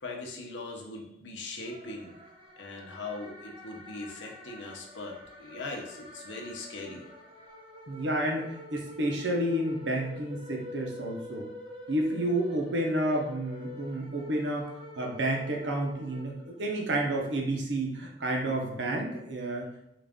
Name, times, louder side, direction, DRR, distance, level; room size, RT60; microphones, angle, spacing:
voice 1, 0.0-2.2 2.6-7.0, left 2 dB, 85° left, 1 dB, 0.8 m, -40 dB
sound 1, 1.6-16.9, left 1 dB, 25° right, 0.6 m, -47 dB
voice 2, 7.9-11.5 11.9-14.7 15.0-19.9, right 1 dB, 75° right, 1 dB, 0.7 m, -30 dB
3.9 x 2.4 x 3.5 m, 0.81 s
head